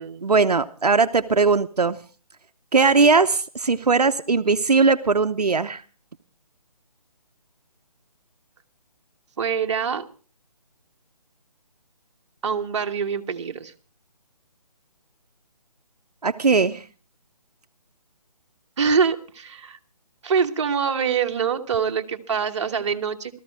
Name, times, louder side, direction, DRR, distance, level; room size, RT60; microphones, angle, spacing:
voice 1, 0.2-2.0 2.7-5.8 16.2-16.8, right 4 dB, 90° right, 9 dB, 0.9 m, -19 dB
voice 2, 9.4-10.0 12.4-13.7 18.8-19.8 20.2-23.4, right 6 dB, 50° right, 5 dB, 1.4 m, -24 dB
17.0 x 14.0 x 4.7 m, 0.37 s
figure-of-eight pair, 155°, 20 cm